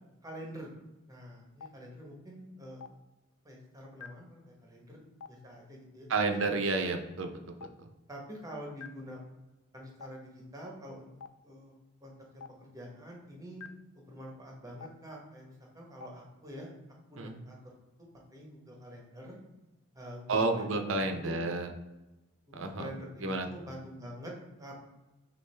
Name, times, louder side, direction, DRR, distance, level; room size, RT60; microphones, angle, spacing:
voice 1, 0.2-0.8 1.1-2.8 3.4-6.4 8.1-9.2 9.7-11.1 11.4-11.7 12.0-16.7 17.1-19.4 19.9-21.4 22.5-24.3 24.6-24.7, equal, 15° right, -1 dB, 0.9 m, -46 dB
Stream, 1.6-1.7 2.8-2.9 4.0-4.1 5.2-5.3 6.4-6.5 7.6-7.7 8.8-8.9 10.0-10.1 11.2-11.3 12.4-12.5 13.6-13.7 14.8-14.9 16.0-16.1, left 6 dB, 75° left, 0.3 m, -43 dB
voice 2, 6.1-7.3 7.8-7.9 17.2-17.4 20.3-21.7 22.5-22.9 23.2-23.5, right 3 dB, 65° right, 6 dB, 0.6 m, -30 dB
6.5 x 2.5 x 3.2 m, 1.0 s
head